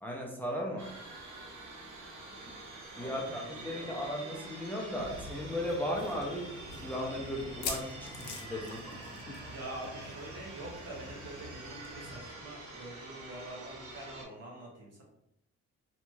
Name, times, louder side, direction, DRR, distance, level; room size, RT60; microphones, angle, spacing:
voice 1, 0.0-0.9 2.4-2.6 3.0-8.8, left 1 dB, 5° left, -2 dB, 0.5 m, -36 dB
sound 1, 0.8-14.2, right 2 dB, 80° right, 0.8 m, -47 dB
voice 2, 2.9-4.1 9.4-15.0, right 1 dB, 55° right, -2 dB, 0.9 m, -46 dB
sound 2, 5.0-12.2, equal, 25° left, 1.0 m, -49 dB
sound 3, 7.4-9.6 9.8-10.0 10.3-10.4 11.8-11.9, left 5 dB, 85° left, 0.6 m, -41 dB
2.9 x 2.8 x 2.3 m, 0.77 s
cardioid pair, 90°, 30 cm